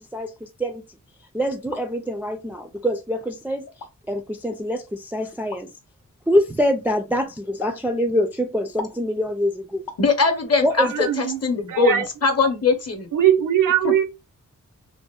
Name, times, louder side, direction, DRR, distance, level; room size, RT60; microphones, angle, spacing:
voice 1, 0.1-0.8 1.3-3.7 4.1-5.7 6.3-9.8 10.6-11.1, equal, 5° right, 0.3 m, -24 dB
sound 1, 1.4-1.9 2.8-2.9 3.7-3.9 5.5-5.6 7.6-7.8 8.8-9.0 9.9-10.1 11.3-11.4 12.0-12.2 12.4-12.6, left 5 dB, 80° left, 0.6 m, -36 dB
voice 2, 10.0-13.1 13.8-13.9, left 4 dB, 45° left, 0.8 m, -21 dB
voice 3, 10.8-11.4 11.7-12.1 13.1-14.0, right 10 dB, 70° right, 0.5 m, -20 dB
2.7 x 2.1 x 2.2 m
cardioid pair, 55°, 34 cm